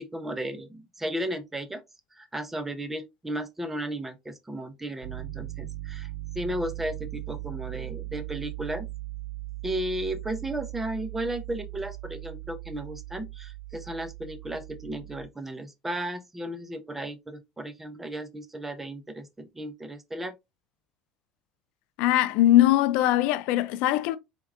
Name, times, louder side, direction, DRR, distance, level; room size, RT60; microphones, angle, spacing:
voice 1, 0.0-1.8 2.1-6.1 6.3-8.9 9.6-20.3, right 1 dB, 10° right, 0.7 m, -34 dB
Piano, 5.0-15.3, right 19 dB, 50° right, 2.0 m, -39 dB
voice 2, 22.0-24.2, left 14 dB, 75° left, 0.4 m, -21 dB
4.4 x 3.6 x 2.5 m
supercardioid pair, 110°, 2 cm